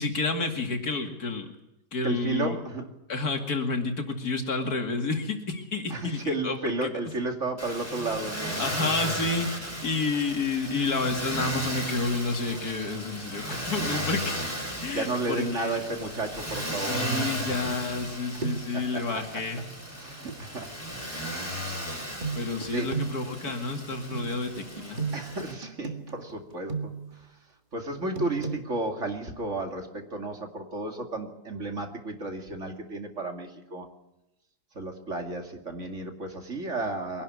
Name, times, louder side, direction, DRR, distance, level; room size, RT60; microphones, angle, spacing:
voice 1, 0.0-1.5 1.9-2.6 3.1-6.9 8.6-9.5 9.8-14.4 14.8-15.8 16.8-19.6 22.3-25.0, left 3 dB, 65° left, 5 dB, 2.9 m, -30 dB
voice 2, 2.0-2.8 5.9-9.1 13.5-14.0 14.9-17.6 18.7-19.0 20.0-20.7 21.3-21.7 22.7-22.9 25.1-27.3 27.7-33.9 34.7-37.2, right 2 dB, 45° right, 5 dB, 2.7 m, -33 dB
Motor vehicle (road), 7.6-25.5, equal, 10° left, 6.4 m, -35 dB
sound 1, 17.6-18.1 18.4-18.8 20.3-20.4 22.2-27.2 28.2-28.6, right 4 dB, 30° right, 2.0 m, -35 dB
23.0 x 11.5 x 9.6 m, 0.91 s
omnidirectional pair, 1.8 m